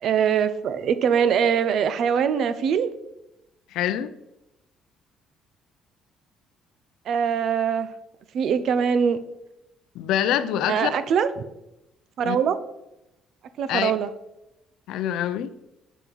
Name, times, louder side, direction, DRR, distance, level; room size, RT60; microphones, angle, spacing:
voice 1, 0.0-2.9 7.1-7.9 8.3-9.2 10.7-11.3 12.2-12.6 13.6-14.1, right 7 dB, 50° right, 13 dB, 0.5 m, -22 dB
voice 2, 3.7-4.1 10.0-10.9 12.2-12.4 13.7-13.9 14.9-15.5, left 11 dB, 75° left, 11 dB, 0.5 m, -25 dB
8.1 x 5.3 x 4.5 m, 0.91 s
cardioid pair, 170°, 0 cm